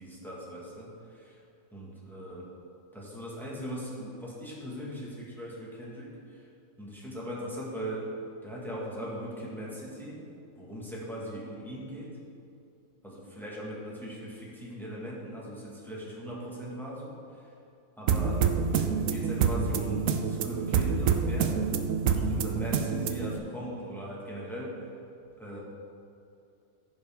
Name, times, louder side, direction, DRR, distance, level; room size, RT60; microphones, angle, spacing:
voice 1, 0.0-1.4 1.7-2.5 2.9-6.5 6.8-8.1 8.4-10.2 10.6-12.1 13.0-17.5 18.0-18.4 18.7-21.6 22.0-24.9 25.4-25.6, equal, ahead, -5 dB, 1.6 m, -39 dB
sound 1, 18.1-23.4, right 6 dB, 65° right, 0.8 m, -27 dB
15.0 x 5.2 x 3.7 m, 2.6 s
omnidirectional pair, 1.9 m